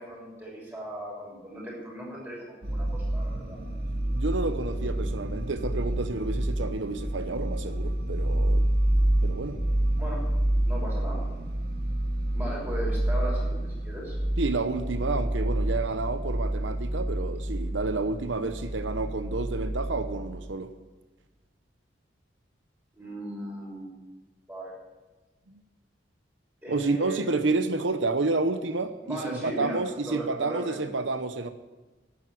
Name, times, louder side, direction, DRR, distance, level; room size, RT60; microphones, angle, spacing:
voice 1, 0.0-3.6 10.0-10.2 10.6-11.2 12.3-14.2 22.9-24.0 24.5-24.7 26.6-27.2 29.0-30.9, right 1 dB, 10° right, -4 dB, 6.3 m, -37 dB
sound 1, 2.6-20.5, right 1 dB, 55° right, 2.0 m, -28 dB
voice 2, 4.1-8.6 9.2-9.6 14.4-20.7 25.5-25.6 26.7-31.5, right 3 dB, 90° right, 10 dB, 0.9 m, -30 dB
12.0 x 9.6 x 9.6 m, 1.2 s
head